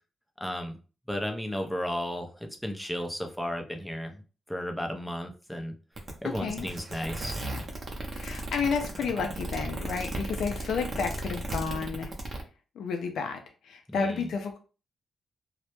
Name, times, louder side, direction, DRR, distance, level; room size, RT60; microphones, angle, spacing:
voice 1, 0.4-0.8 1.1-4.2 4.5-5.7 6.2-7.4 13.9-14.3, equal, 5° left, 4 dB, 0.5 m, -34 dB
sound 1, 6.0-12.4, right 2 dB, 40° right, 0.6 m, -35 dB
voice 2, 8.1-12.1 12.8-13.4 13.6-14.6, left 5 dB, 80° left, 4 dB, 0.4 m, -31 dB
2.1 x 2.0 x 2.9 m, 0.35 s
cardioid pair, 90°, 0 cm